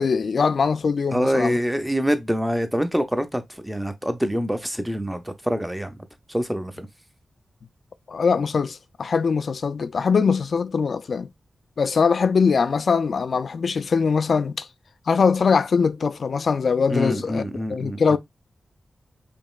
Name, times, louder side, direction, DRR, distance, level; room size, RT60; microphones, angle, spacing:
voice 1, 0.0-1.6 8.1-11.3 11.8-14.7 15.1-17.4 17.7-18.2, left 5 dB, 65° left, 0.3 m, -22 dB
voice 2, 1.1-6.0 6.3-6.9 16.9-18.2, equal, 5° right, 0.6 m, -25 dB
5.1 x 2.9 x 2.3 m
wide cardioid pair, 115°, 0 cm